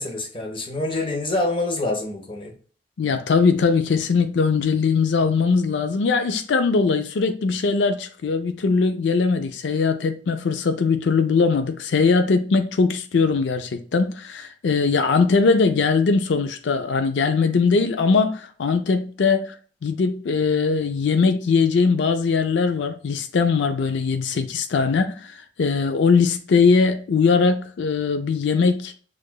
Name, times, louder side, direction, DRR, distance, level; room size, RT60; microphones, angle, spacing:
voice 1, 0.0-2.5, left 2 dB, 30° left, 0.9 m, -26 dB
voice 2, 3.0-19.5 19.8-28.9, left 4 dB, 70° left, 0.4 m, -20 dB
6.5 x 2.4 x 2.2 m
head